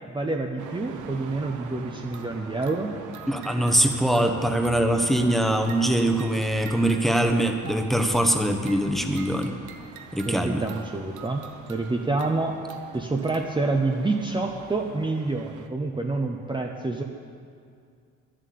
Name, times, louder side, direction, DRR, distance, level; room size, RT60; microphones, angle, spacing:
voice 1, 0.1-2.9 10.3-11.4 11.7-12.5 12.9-17.0, right 3 dB, 15° right, 2 dB, 0.8 m, -27 dB
sound 1, 0.6-15.7, right 7 dB, 80° right, 0.9 m, -43 dB
voice 2, 3.3-9.5 10.1-10.6, right 1 dB, ahead, 4 dB, 1.0 m, -23 dB
10.5 x 7.6 x 8.5 m, 2.3 s
cardioid pair, 90°, 30 cm